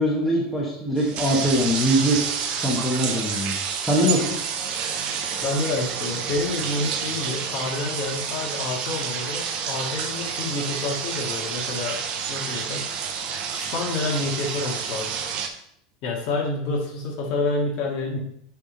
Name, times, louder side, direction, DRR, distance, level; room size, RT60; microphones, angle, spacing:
voice 1, 0.0-2.2 2.5-4.3, equal, 5° left, -4 dB, 1.1 m, -22 dB
sound 1, 1.0-15.5, right 6 dB, 35° right, 0.7 m, -29 dB
voice 2, 5.4-12.0 12.3-12.9 13.5-15.1 16.0-18.2, left 3 dB, 45° left, 0 dB, 1.8 m, -28 dB
9.9 x 3.5 x 3.8 m, 0.70 s
supercardioid pair, 175°, 3 cm